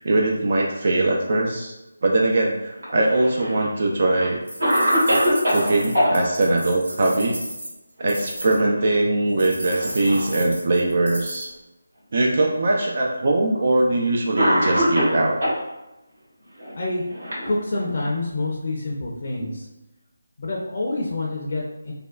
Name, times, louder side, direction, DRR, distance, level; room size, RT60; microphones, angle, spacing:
voice 1, 0.0-1.7 2.0-4.4 5.5-7.4 8.0-11.5 12.1-15.4 19.4-19.5, right 2 dB, 50° right, -1 dB, 0.4 m, -21 dB
Cough, 2.8-3.7 4.2-4.3 4.6-6.1 8.0-8.4 8.8-8.9 9.7-10.4 11.2-11.3 12.3-12.4 13.6-13.7 14.4-15.6 16.6-18.0, equal, 65° right, 1.4 m, -23 dB
sound 1, 4.5-8.6 9.4-11.5, right 1 dB, 85° right, 1.4 m, -34 dB
voice 2, 17.4-19.7 20.4-21.9, left 2 dB, 45° left, -3 dB, 0.5 m, -27 dB
3.4 x 2.2 x 2.3 m, 0.97 s
figure-of-eight pair, 160°, 0 cm